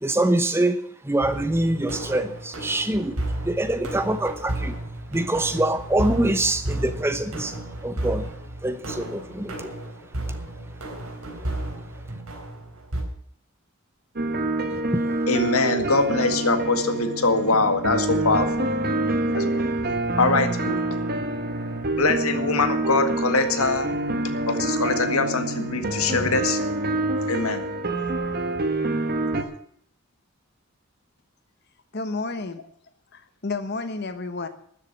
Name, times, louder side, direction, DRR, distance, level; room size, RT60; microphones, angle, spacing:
voice 1, 0.0-4.7 5.1-8.3 8.6-9.7, right 1 dB, 10° right, 9 dB, 0.8 m, -25 dB
sound 1, 1.2-13.0, right 1 dB, 80° right, 4.2 m, -33 dB
sound 2, 14.2-29.4, right 2 dB, 45° right, 1.4 m, -26 dB
voice 2, 15.3-18.7 19.3-19.6 20.2-20.8 22.0-24.0 24.5-26.6 27.3-27.6, left 3 dB, 80° left, 8 dB, 1.8 m, -23 dB
voice 3, 31.9-32.6 33.1-34.5, left 3 dB, 50° left, 10 dB, 1.0 m, -31 dB
13.0 x 7.5 x 8.9 m, 0.66 s
head